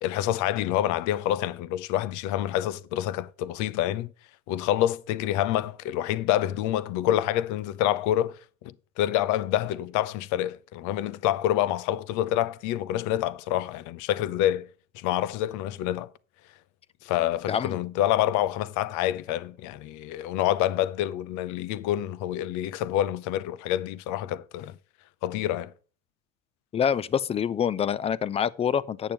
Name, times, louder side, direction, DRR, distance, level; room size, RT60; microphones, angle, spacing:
voice 1, 0.0-4.1 4.5-14.7 14.9-16.1 17.0-24.7 25.2-25.7, left 12 dB, 55° left, 0.7 m, -27 dB
voice 2, 26.7-29.1, left 8 dB, 20° left, 0.4 m, -26 dB
9.0 x 6.9 x 4.5 m
supercardioid pair, 110°, 36 cm